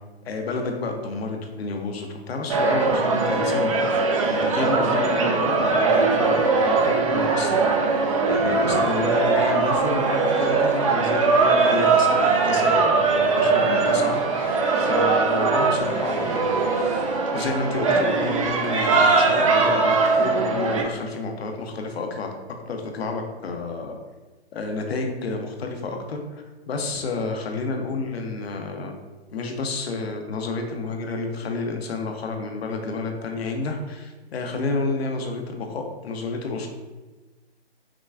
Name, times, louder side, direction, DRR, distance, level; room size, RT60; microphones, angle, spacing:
voice 1, 0.2-3.7 4.3-7.6 8.3-17.1 17.3-22.3 22.7-24.0 24.5-29.0 29.3-36.7, left 3 dB, 65° left, 4 dB, 0.7 m, -30 dB
sound 1, 2.5-20.8, right 4 dB, 30° right, 0.4 m, -21 dB
sound 2, 10.3-10.9 11.4-13.3 13.6-15.4 15.8-17.6 17.9-19.0, right 1 dB, 55° right, 0.8 m, -37 dB
5.9 x 2.2 x 2.3 m, 1.2 s
hypercardioid pair, 135°, 33 cm